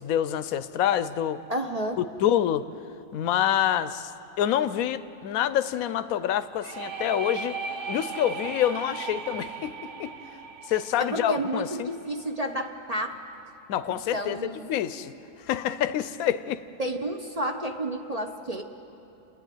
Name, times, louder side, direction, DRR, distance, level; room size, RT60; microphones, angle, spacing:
voice 1, 0.0-1.4 2.2-2.7 3.1-4.1 4.4-7.6 7.9-10.2 10.7-11.9 13.7-14.4 14.7-15.1 15.5-16.6, left 10 dB, 85° left, 13 dB, 1.1 m, -26 dB
voice 2, 1.5-2.0 11.0-13.2 13.9-14.7 16.8-18.6, right 1 dB, 35° right, 3 dB, 0.8 m, -31 dB
sound 1, 6.6-12.3, right 5 dB, 60° right, 1.2 m, -37 dB
29.0 x 10.5 x 9.1 m, 2.9 s
omnidirectional pair, 1.5 m